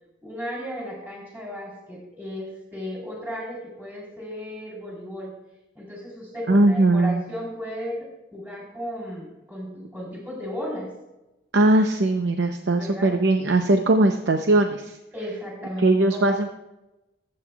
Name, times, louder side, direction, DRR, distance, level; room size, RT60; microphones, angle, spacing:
voice 1, 0.2-5.3 5.7-10.9 12.8-13.1 15.1-16.5, equal, 10° right, -3 dB, 3.8 m, -35 dB
voice 2, 6.5-7.2 11.5-15.0 15.8-16.5, right 2 dB, 80° right, 5 dB, 0.7 m, -20 dB
24.0 x 8.7 x 2.3 m, 0.98 s
head